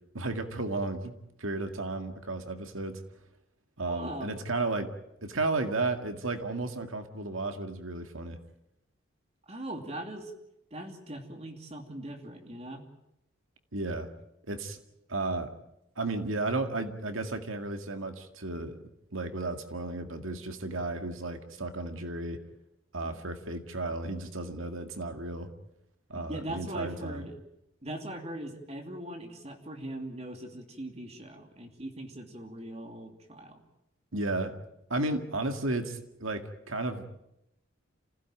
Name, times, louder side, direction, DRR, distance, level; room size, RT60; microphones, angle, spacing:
voice 1, 0.1-3.0 3.8-4.9 5.2-8.4 13.7-14.1 14.5-14.8 15.1-15.5 16.0-18.8 19.1-22.4 22.9-25.5 26.1-27.3 34.1-34.6 34.9-37.1, right 2 dB, 80° right, 7 dB, 2.1 m, -33 dB
voice 2, 3.9-4.3 9.5-10.3 10.7-12.8 23.0-23.2 26.1-27.4 27.8-33.6, right 1 dB, 30° right, 4 dB, 2.8 m, -40 dB
27.0 x 16.0 x 9.0 m, 0.84 s
head